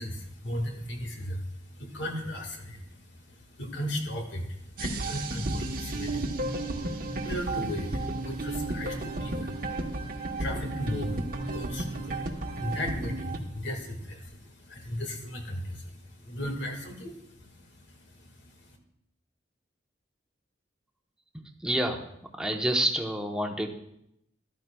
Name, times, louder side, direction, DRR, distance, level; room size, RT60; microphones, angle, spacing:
voice 1, 0.0-18.8, equal, 75° left, 3 dB, 1.8 m, -37 dB
sound 1, 4.8-13.4, right 2 dB, 50° right, 1.0 m, -33 dB
voice 2, 21.4-22.1 22.4-23.7, right 1 dB, 5° right, 3 dB, 0.9 m, -28 dB
13.5 x 12.5 x 2.3 m, 0.76 s
head